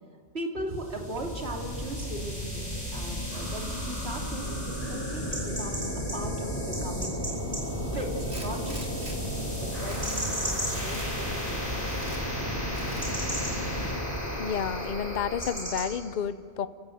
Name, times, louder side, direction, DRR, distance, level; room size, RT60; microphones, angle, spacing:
voice 1, 0.3-7.3 7.9-11.6, right 1 dB, 60° right, 1 dB, 3.1 m, -38 dB
sound 1, 0.7-16.0, equal, 10° left, 6.9 m, -33 dB
sound 2, 1.4-16.0, equal, 40° right, 6.5 m, -40 dB
Tools, 8.3-9.2 9.6-10.3 10.7-11.1 11.7-12.2 12.7-13.2, right 2 dB, 75° right, 3.6 m, -44 dB
voice 2, 14.4-16.7, left 7 dB, 45° left, 14 dB, 0.8 m, -31 dB
29.5 x 16.5 x 7.9 m, 2.2 s
omnidirectional pair, 1.2 m